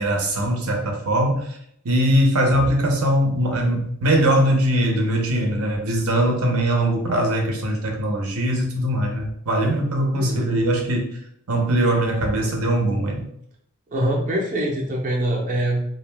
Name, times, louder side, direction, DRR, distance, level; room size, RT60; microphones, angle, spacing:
voice 1, 0.0-1.6 1.8-11.1 11.5-13.2, right 1 dB, 85° right, 2 dB, 0.7 m, -21 dB
voice 2, 10.1-10.5 13.9-15.9, right 1 dB, 35° right, -2 dB, 0.5 m, -24 dB
2.5 x 2.1 x 3.2 m, 0.71 s
head